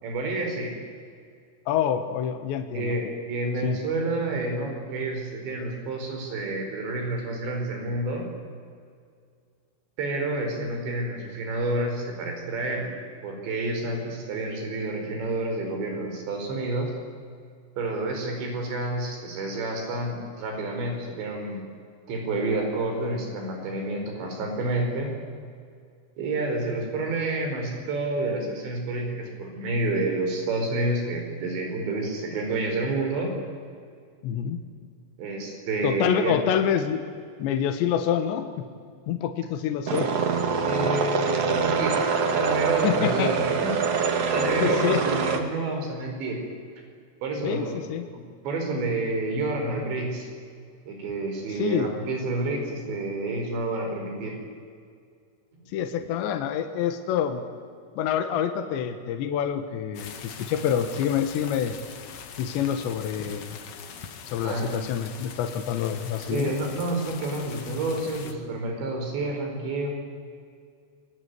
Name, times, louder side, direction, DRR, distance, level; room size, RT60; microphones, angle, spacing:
voice 1, 0.0-0.7 2.7-8.3 10.0-13.0 13.2-16.9 17.8-21.6 22.1-25.1 26.2-33.3 35.2-36.4 40.6-43.7 44.3-46.4 47.2-47.8 48.5-50.3 50.9-54.4 64.4-64.8 66.2-69.9, right 2 dB, 70° right, 3 dB, 7.1 m, -29 dB
voice 2, 1.7-2.9 3.6-3.8 34.2-34.6 35.8-37.0 37.4-38.7 39.1-40.1 40.8-40.9 42.8-43.3 44.6-45.0 47.4-48.1 51.5-51.9 55.7-57.4 58.0-61.8 62.4-63.6 64.3-66.5, left 9 dB, 75° left, 6 dB, 3.5 m, -27 dB
sound 1, 39.9-45.4, right 5 dB, 50° right, 2.0 m, -24 dB
sound 2, 59.9-68.3, left 7 dB, 55° left, 2.0 m, -42 dB
27.5 x 22.5 x 9.5 m, 2.2 s
omnidirectional pair, 5.4 m